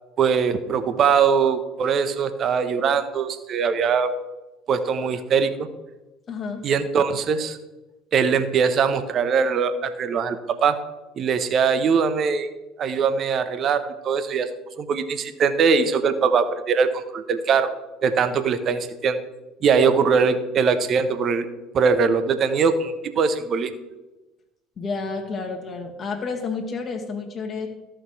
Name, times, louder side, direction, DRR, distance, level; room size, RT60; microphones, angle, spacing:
voice 1, 0.2-4.1 4.7-5.7 6.6-7.6 8.1-10.8 11.2-12.5 12.8-14.5 14.8-17.7 18.0-19.2 19.6-21.5 21.7-23.7, right 6 dB, 45° right, 11 dB, 1.0 m, -21 dB
voice 2, 6.3-6.7 24.8-27.7, left 4 dB, 40° left, 3 dB, 1.6 m, -30 dB
14.0 x 6.4 x 4.7 m, 1.1 s
figure-of-eight pair, 65°, 0 cm